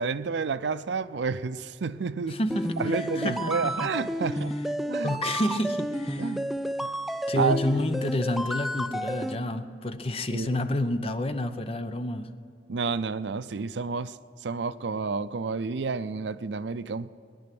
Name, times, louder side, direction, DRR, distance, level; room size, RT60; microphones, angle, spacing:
voice 1, 0.0-2.4 2.8-4.6 4.9-5.1 6.2-6.4 6.8-6.9 7.4-7.6 10.3-10.6 12.7-14.2 14.4-17.1, right 5 dB, 80° right, 0.5 m, -30 dB
voice 2, 2.3-4.0 4.8-6.4 7.3-12.3, left 1 dB, 35° left, 0.7 m, -29 dB
sound 1, 2.5-9.3, equal, ahead, 0.4 m, -31 dB
19.0 x 10.5 x 6.0 m
head